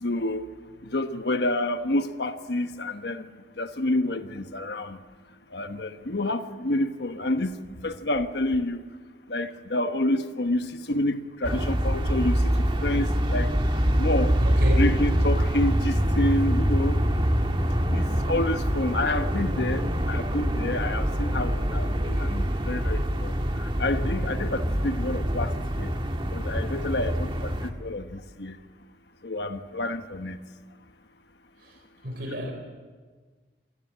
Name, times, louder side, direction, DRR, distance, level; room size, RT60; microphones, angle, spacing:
voice 1, 0.0-0.5 0.9-3.2 3.6-5.0 5.5-7.5 7.8-8.8 9.3-12.5 12.8-13.5 14.0-14.3 14.8-17.0 17.9-23.3 23.6-25.9 26.3-27.5 27.8-28.5 29.2-30.4, left 1 dB, 70° left, 8 dB, 1.2 m, -28 dB
sound 1, 11.4-27.7, equal, 30° right, 1.6 m, -25 dB
voice 2, 14.4-14.8 32.0-32.5, equal, 65° right, 3 dB, 4.0 m, -30 dB
28.0 x 16.0 x 8.7 m, 1.5 s
head